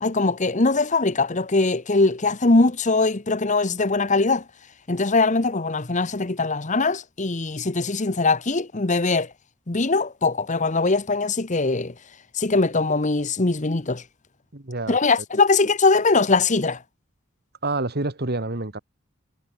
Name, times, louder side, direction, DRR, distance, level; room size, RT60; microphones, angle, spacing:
voice 1, 0.0-4.4 4.9-9.3 9.7-11.9 12.3-14.0 14.9-16.8, left 3 dB, 35° left, 1.1 m, -21 dB
voice 2, 14.5-15.0 17.6-18.8, right 2 dB, 50° right, 2.1 m, -27 dB
head